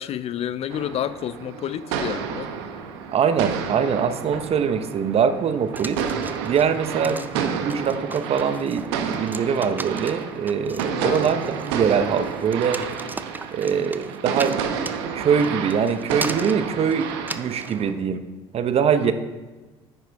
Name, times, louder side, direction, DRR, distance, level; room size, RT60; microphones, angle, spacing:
voice 1, 0.0-2.5 7.0-7.3 10.9-11.3 13.7-13.9 19.0-19.1, left 10 dB, 45° left, 16 dB, 0.4 m, -30 dB
sound 1, 0.7-17.9, right 7 dB, 80° right, 0.8 m, -31 dB
voice 2, 3.1-6.0 6.4-12.8 13.5-14.6 15.1-18.2 18.5-19.1, right 7 dB, 50° right, 10 dB, 0.8 m, -23 dB
sound 2, 5.8-17.8, right 3 dB, 15° right, 0.5 m, -37 dB
9.3 x 8.9 x 3.5 m, 1.2 s
hypercardioid pair, 65°, 14 cm